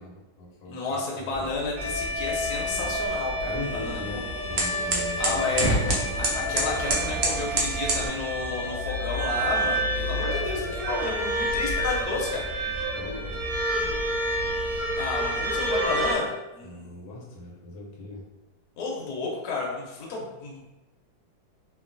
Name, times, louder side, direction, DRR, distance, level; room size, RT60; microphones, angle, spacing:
voice 1, 0.0-1.5 3.4-6.1 12.9-14.1 16.6-18.2, left 2 dB, 85° left, -2 dB, 1.4 m, -40 dB
voice 2, 0.7-4.3 5.2-5.8 6.1-12.4 15.0-16.8 18.8-20.6, left 3 dB, 65° left, -2 dB, 1.1 m, -31 dB
sound 1, 1.3-8.1, right 2 dB, 80° right, 0.6 m, -30 dB
sound 2, 1.8-16.1, right 1 dB, 65° right, 1.0 m, -29 dB
3.0 x 2.4 x 2.5 m, 1.0 s
omnidirectional pair, 2.0 m